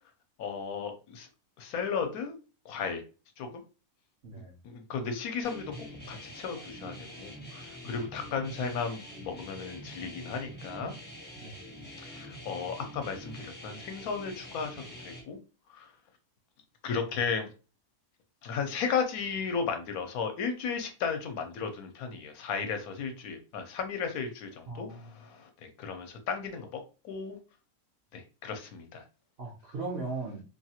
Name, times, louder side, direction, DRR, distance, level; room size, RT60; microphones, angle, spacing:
voice 1, 0.4-1.3 1.6-2.3 2.7-3.0 3.4-3.5 4.6-5.7 6.1-10.9 12.0-15.4 15.7-15.9 16.8-17.5 18.4-25.5 25.8-26.8 27.0-27.4 28.1-29.0, left 5 dB, 80° left, 7 dB, 1.0 m, -34 dB
voice 2, 4.2-4.5 7.8-8.0 11.4-11.5 24.7-25.2 29.4-30.4, right 3 dB, 55° right, 0 dB, 0.7 m, -38 dB
sound 1, 5.4-15.2, equal, 10° left, 0.5 m, -45 dB
2.7 x 2.3 x 2.8 m, 0.33 s
omnidirectional pair, 1.6 m